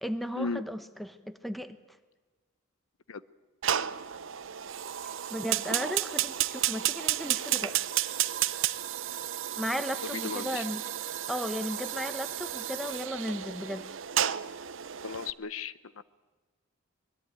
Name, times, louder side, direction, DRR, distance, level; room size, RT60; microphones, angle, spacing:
voice 1, 0.0-1.8 5.3-7.8 9.6-10.8 11.3-13.9, equal, ahead, 10 dB, 1.0 m, -35 dB
Fire, 3.6-15.3, right 11 dB, 65° right, 0.7 m, -32 dB
voice 2, 10.1-10.6 15.0-16.0, left 4 dB, 75° left, 16 dB, 0.8 m, -35 dB
24.5 x 21.0 x 9.1 m, 1.3 s
head